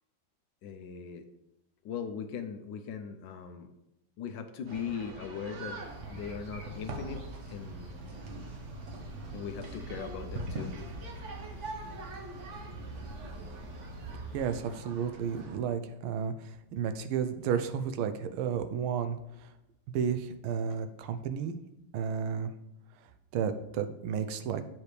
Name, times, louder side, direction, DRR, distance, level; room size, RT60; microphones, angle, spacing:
voice 1, 0.6-1.2 1.8-3.7 4.2-8.0 9.3-10.7 11.6-11.7 15.0-15.1 20.7-20.8, left 7 dB, 70° left, 8 dB, 1.3 m, -40 dB
sound 1, 4.7-15.6, right 2 dB, 50° right, 1.0 m, -43 dB
sound 2, 5.8-14.6, right 1 dB, 70° right, 3.0 m, -46 dB
voice 2, 14.3-19.2 19.9-21.5 21.9-22.5 23.3-24.6, right 7 dB, 85° right, 10 dB, 1.5 m, -32 dB
9.1 x 6.0 x 3.3 m, 0.87 s
omnidirectional pair, 2.2 m